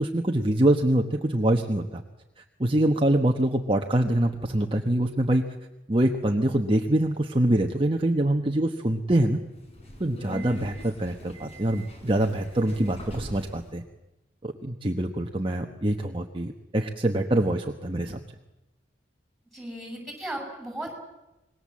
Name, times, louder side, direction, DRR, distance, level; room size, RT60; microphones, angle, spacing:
voice 1, 0.0-2.0 2.6-5.5 5.9-9.4 10.0-13.8 14.4-18.2, right 1 dB, 30° right, 3 dB, 1.2 m, -24 dB
Subway metro underground, 9.5-13.7, equal, 35° left, 4.7 m, -42 dB
voice 2, 19.5-21.0, right 1 dB, ahead, 2 dB, 7.2 m, -36 dB
26.5 x 21.5 x 7.6 m, 0.97 s
head